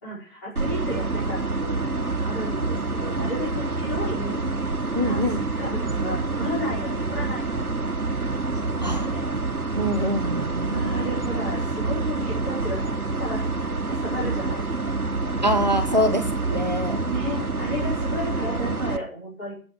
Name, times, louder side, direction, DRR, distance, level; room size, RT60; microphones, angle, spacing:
voice 1, 0.0-4.7 5.0-5.2 5.5-8.4 8.7-9.3 10.6-12.8 13.2-13.5 13.9-14.6 15.9-16.0 17.0-19.5, equal, 10° left, -9 dB, 5.1 m, -33 dB
sound 1, 0.5-19.0, right 3 dB, 75° right, 1.6 m, -27 dB
voice 2, 4.9-5.4 8.8-9.1 9.8-10.8 15.4-17.0, equal, 30° right, 7 dB, 1.3 m, -24 dB
10.5 x 8.3 x 7.7 m, 0.42 s
figure-of-eight pair, 165°, 44 cm